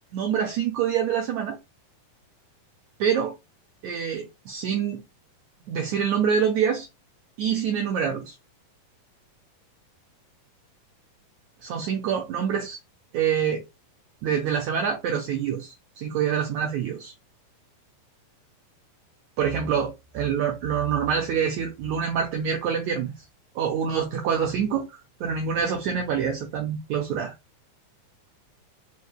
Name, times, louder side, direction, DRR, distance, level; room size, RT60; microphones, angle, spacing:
voice 1, 0.1-1.6 3.0-3.4 3.8-5.0 5.7-6.9 7.4-8.3 11.6-12.8 13.1-13.6 14.2-17.1 19.4-23.1 23.6-24.9 25.2-27.3, right 7 dB, 75° right, 1.8 m, -26 dB
5.4 x 3.2 x 2.3 m
omnidirectional pair, 4.0 m